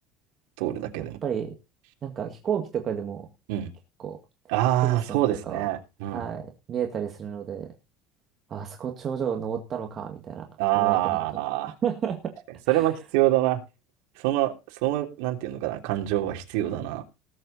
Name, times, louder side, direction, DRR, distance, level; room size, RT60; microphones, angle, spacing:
voice 1, 0.6-1.2 3.5-3.7 4.5-6.3 10.6-11.7 12.7-13.6 14.2-14.5 14.8-17.0, right 15 dB, 70° right, 3 dB, 3.4 m, -25 dB
voice 2, 1.2-1.6 2.0-3.3 4.0-4.2 4.8-5.6 6.1-7.7 8.5-10.5 10.7-11.2 11.8-12.4 12.7-12.9, right 8 dB, 25° right, 3 dB, 2.0 m, -31 dB
19.0 x 7.8 x 4.1 m, 0.28 s
cardioid pair, 175°, 0 cm